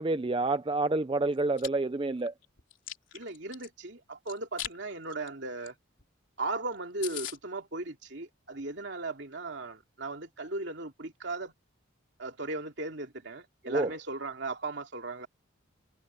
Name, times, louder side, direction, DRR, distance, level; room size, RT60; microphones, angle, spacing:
voice 1, 0.0-2.3 13.7-13.9, right 2 dB, 25° right, 0.5 m, -28 dB
Chewing mastication, 1.3-1.7 2.2-3.7 4.3-4.8 5.1-5.3 5.6-5.7 6.0-6.1 6.5-6.6 6.7-6.8 7.0-7.4, left 12 dB, 70° left, 3.6 m, -39 dB
voice 2, 3.1-5.7 6.4-11.5 12.2-15.3, right 2 dB, 60° right, 2.7 m, -37 dB
head